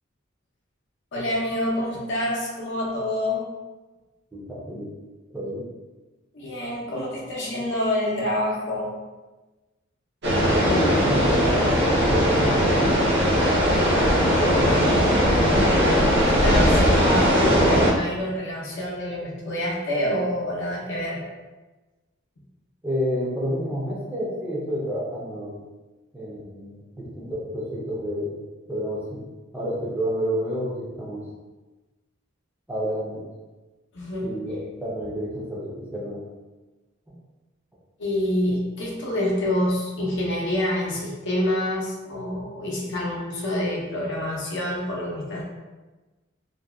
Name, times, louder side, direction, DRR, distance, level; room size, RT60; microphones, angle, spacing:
voice 1, 1.1-3.5 6.3-8.9 16.2-21.2 33.9-34.3 38.0-45.4, left 1 dB, 65° left, -4 dB, 0.6 m, -27 dB
voice 2, 4.3-4.9 5.3-5.7 10.6-13.0 14.2-15.1 22.8-25.6 26.1-28.4 28.7-29.3 29.5-31.3 32.7-33.3 34.2-36.3 37.1-37.2, equal, 10° right, -6 dB, 0.5 m, -30 dB
sound 1, 10.2-17.9, equal, 60° right, 0.6 m, -19 dB
2.6 x 2.2 x 2.3 m, 1.2 s
head